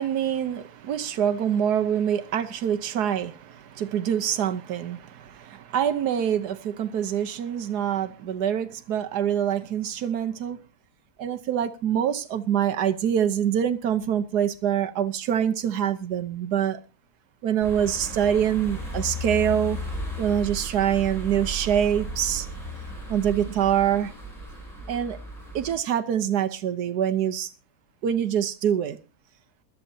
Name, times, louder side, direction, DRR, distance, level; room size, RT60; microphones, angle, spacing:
voice 1, 0.0-10.6 11.2-16.8 17.4-19.8 20.2-22.5 23.1-24.1 24.9-25.2 25.5-27.5 28.0-29.0, right 9 dB, 85° right, 1.5 m, -25 dB
sound 1, 17.6-25.8, equal, ahead, 7.9 m, -35 dB
21.0 x 12.0 x 2.7 m
omnidirectional pair, 1.7 m